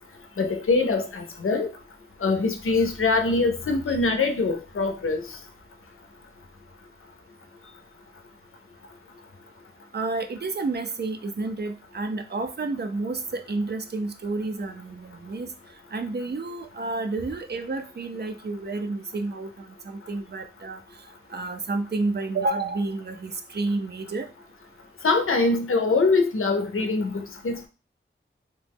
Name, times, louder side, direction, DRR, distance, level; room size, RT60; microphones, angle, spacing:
voice 1, 0.4-1.7 2.2-5.2 25.0-27.6, left 3 dB, 80° left, 5 dB, 0.5 m, -23 dB
voice 2, 9.9-15.5 15.9-20.8 21.3-24.3, right 3 dB, 50° right, 6 dB, 0.4 m, -30 dB
2.9 x 2.1 x 3.4 m, 0.33 s
wide cardioid pair, 75°, 21 cm